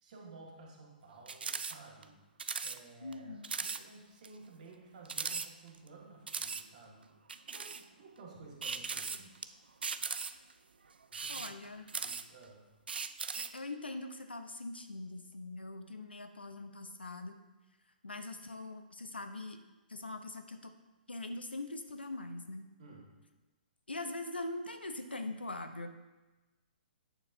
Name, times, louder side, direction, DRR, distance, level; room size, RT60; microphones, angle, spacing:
voice 1, 0.0-2.2 2.6-7.1 7.5-9.4 11.1-11.5 11.9-12.6 22.8-23.1, right 3 dB, 50° right, -2 dB, 1.8 m, -54 dB
sound 1, 1.3-1.8 2.0-2.1 2.4-2.8 3.1-3.2 3.4-3.8 4.2-4.3 5.1-5.9 6.3-6.6 7.3-7.8 8.6-9.4 9.8-10.5 11.0-12.4 12.9-13.6, right 5 dB, 75° right, 0.3 m, -38 dB
voice 2, 3.0-3.5 11.3-11.9 13.3-17.3 18.0-19.6 19.9-20.7 21.1-22.6 23.9-25.9, left 2 dB, 85° left, 7 dB, 0.7 m, -42 dB
8.8 x 6.5 x 2.7 m, 1.1 s
figure-of-eight pair, 125°, 5 cm